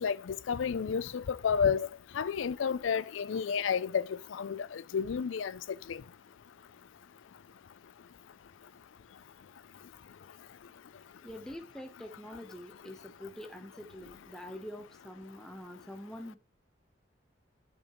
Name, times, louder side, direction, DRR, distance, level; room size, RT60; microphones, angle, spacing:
voice 1, 0.0-1.9 2.1-5.5 5.9-6.0, left 6 dB, 90° left, 0.4 m, -31 dB
voice 2, 11.2-16.4, left 1 dB, 5° left, 0.9 m, -45 dB
8.0 x 7.2 x 3.0 m
head